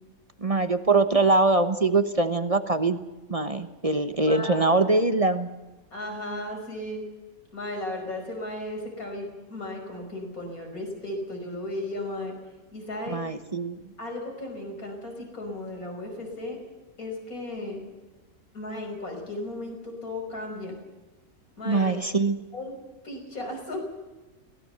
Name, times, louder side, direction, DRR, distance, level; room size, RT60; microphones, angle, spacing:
voice 1, 0.4-3.0 3.3-5.5 13.1-13.9 21.6-22.4, right 3 dB, 25° right, 9 dB, 1.0 m, -23 dB
voice 2, 4.3-4.6 5.9-7.1 7.5-12.4 12.7-13.3 14.0-16.6 17.0-17.8 18.5-20.8 21.6-21.9 22.5-22.8 23.0-23.8, left 1 dB, 80° left, 2 dB, 5.9 m, -35 dB
22.5 x 18.0 x 6.8 m, 1.1 s
omnidirectional pair, 1.5 m